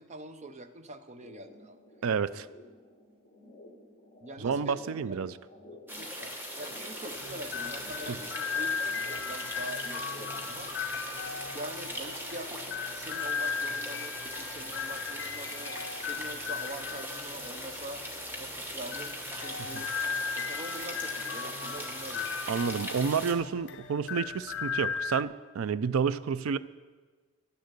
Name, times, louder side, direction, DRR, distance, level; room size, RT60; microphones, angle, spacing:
voice 1, 0.0-1.8 4.2-5.3 6.0-10.9 11.5-18.0 18.3-19.9 20.3-22.5, right 1 dB, 30° right, 9 dB, 0.7 m, -44 dB
sound 1, 1.2-10.7, left 1 dB, 30° left, 1.8 m, -53 dB
voice 2, 2.0-2.5 4.4-5.3 19.7-19.8 22.5-26.6, right 6 dB, 70° right, 16 dB, 0.4 m, -30 dB
sound 2, 5.9-23.3, equal, 10° right, 1.2 m, -40 dB
sound 3, 7.2-25.2, left 6 dB, 55° left, 0.6 m, -37 dB
11.0 x 6.6 x 8.2 m, 1.4 s
head